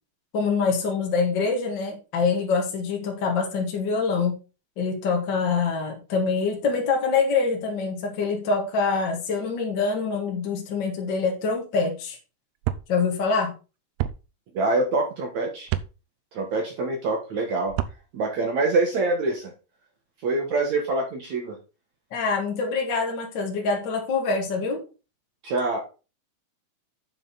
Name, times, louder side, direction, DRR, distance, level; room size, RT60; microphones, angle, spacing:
voice 1, 0.3-4.4 4.8-12.2 12.9-13.6 22.1-24.8, left 4 dB, 60° left, 0 dB, 1.2 m, -25 dB
sound 1, 12.6-12.9 14.0-14.2 15.7-15.9 17.7-18.0, right 13 dB, 85° right, 2.2 m, -27 dB
voice 2, 14.5-15.7 16.3-17.7 18.1-19.5 20.2-21.6 25.4-25.8, right 2 dB, 65° right, 2 dB, 1.8 m, -25 dB
9.3 x 5.8 x 4.1 m, 0.32 s
omnidirectional pair, 5.0 m